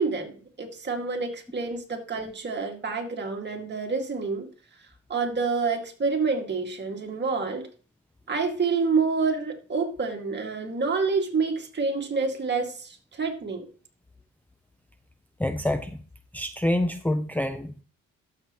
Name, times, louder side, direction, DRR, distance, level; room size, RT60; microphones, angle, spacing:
voice 1, 0.0-4.5 5.1-7.7 8.3-13.7, right 4 dB, 35° right, 2 dB, 2.3 m, -28 dB
voice 2, 15.4-16.0 16.3-17.7, left 1 dB, 5° left, 7 dB, 0.6 m, -26 dB
12.0 x 7.5 x 3.1 m, 0.40 s
cardioid pair, 90°, 30 cm